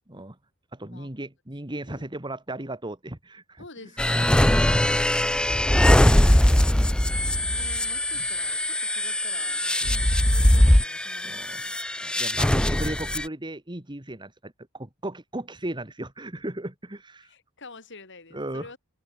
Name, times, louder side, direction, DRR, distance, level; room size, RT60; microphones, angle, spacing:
voice 1, 0.7-3.6 4.1-4.5 6.6-7.0 9.8-10.0 11.3-11.6 12.0-17.3 18.3-18.7, right 1 dB, 20° right, 2.1 m, -36 dB
voice 2, 3.6-6.6 7.5-11.8 17.2-18.8, left 3 dB, 60° left, 6.4 m, -47 dB
sound 1, 4.0-13.3, left 1 dB, 5° left, 0.4 m, -21 dB
head